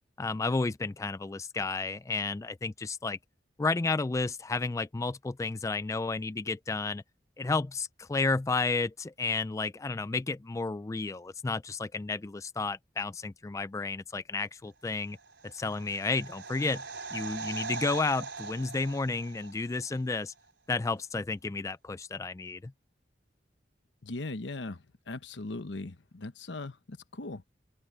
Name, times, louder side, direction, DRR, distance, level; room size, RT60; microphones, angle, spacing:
voice 1, 0.2-3.2 3.6-7.0 7.4-15.2 15.4-16.8 17.1-20.3 20.7-22.7, left 3 dB, 15° left, 0.3 m, -32 dB
sound 1, 15.1-20.0 20.3-20.4, right 4 dB, 90° right, 4.3 m, -41 dB
voice 2, 24.0-27.5, left 2 dB, 75° left, 1.0 m, -39 dB
open air
head